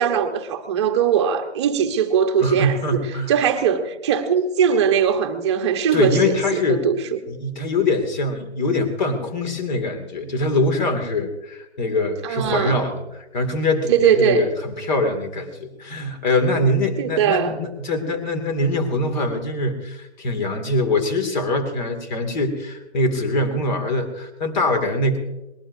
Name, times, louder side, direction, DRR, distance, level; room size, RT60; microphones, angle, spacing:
voice 1, 0.0-7.2 12.2-12.8 13.9-14.5 17.0-17.6, right 7 dB, 25° right, 5 dB, 1.1 m, -20 dB
voice 2, 2.4-3.3 5.9-6.8 7.3-25.2, left 2 dB, 40° left, 7 dB, 2.5 m, -23 dB
22.5 x 20.5 x 2.7 m, 1.0 s
hypercardioid pair, 150°, 34 cm